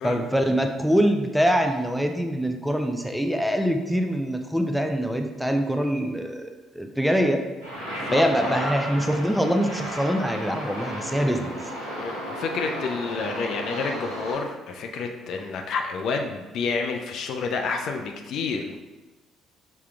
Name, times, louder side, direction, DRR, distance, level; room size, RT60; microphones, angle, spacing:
voice 1, 0.0-7.4 8.1-11.6, equal, ahead, 4 dB, 0.5 m, -24 dB
sound 1, 7.6-14.4, equal, 85° right, 1.4 m, -34 dB
voice 2, 7.9-8.6 11.1-11.3 12.0-18.8, left 4 dB, 55° left, 4 dB, 0.4 m, -29 dB
5.8 x 3.5 x 2.3 m, 1.2 s
figure-of-eight pair, 50°, 0 cm